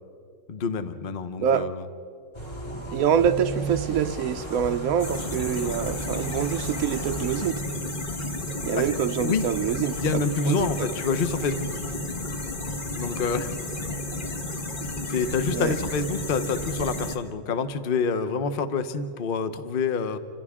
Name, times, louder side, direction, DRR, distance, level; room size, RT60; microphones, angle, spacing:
voice 1, 0.5-1.8 8.8-8.9 9.2-9.5 10.0-11.8 12.9-13.6 15.1-20.2, left 5 dB, 50° left, 10 dB, 0.6 m, -27 dB
sound 1, 2.3-7.5, right 2 dB, 15° left, 1.8 m, -35 dB
voice 2, 2.9-7.5 8.6-10.9 15.5-15.7, right 8 dB, 70° right, 9 dB, 0.8 m, -26 dB
sound 2, 5.0-17.2, left 1 dB, 30° left, 1.1 m, -32 dB
30.0 x 25.5 x 3.7 m, 2.2 s
omnidirectional pair, 2.3 m